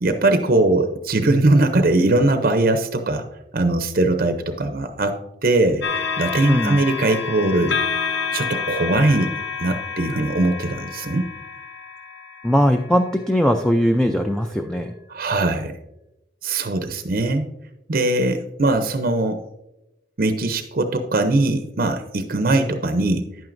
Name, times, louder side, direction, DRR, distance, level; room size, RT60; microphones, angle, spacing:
voice 1, 0.0-3.2 3.5-7.8 8.3-9.3 9.6-11.3 15.1-15.7 16.4-17.5 17.9-19.4 20.2-23.3, right 2 dB, 50° right, 7 dB, 0.6 m, -20 dB
sound 1, 5.8-13.3 14.0-14.2, left 5 dB, 75° left, 0.8 m, -29 dB
voice 2, 6.5-6.8 12.4-14.9, equal, 5° left, 5 dB, 0.4 m, -19 dB
10.5 x 8.9 x 2.6 m, 0.91 s
head